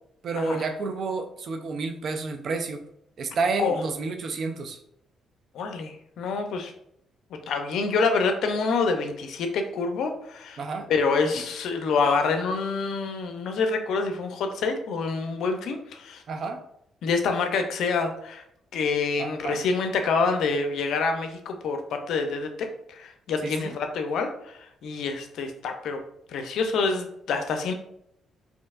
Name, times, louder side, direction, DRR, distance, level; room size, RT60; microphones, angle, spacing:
voice 1, 0.2-2.8 3.2-4.8 10.6-10.9 11.3-11.4 16.3-16.6 19.2-19.6 23.4-23.8, right 4 dB, 60° right, 6 dB, 0.5 m, -30 dB
voice 2, 5.5-6.7 7.5-10.6 10.9-16.2 17.0-18.4 18.7-22.5 22.9-26.0 26.3-27.7, left 4 dB, 75° left, 5 dB, 0.6 m, -27 dB
4.4 x 2.8 x 2.5 m, 0.74 s
cardioid pair, 90°, 0 cm